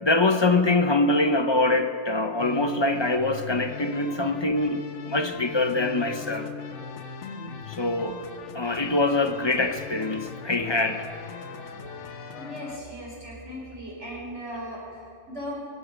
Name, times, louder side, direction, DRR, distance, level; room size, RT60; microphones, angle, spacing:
voice 1, 0.0-6.5 7.7-8.2 8.5-11.1, left 2 dB, 30° left, 8 dB, 0.6 m, -24 dB
sound 1, 2.4-12.8, left 6 dB, 80° left, 1.2 m, -39 dB
voice 2, 12.4-15.5, equal, 75° right, -4 dB, 4.7 m, -38 dB
22.5 x 11.5 x 5.1 m, 2.5 s
omnidirectional pair, 1.2 m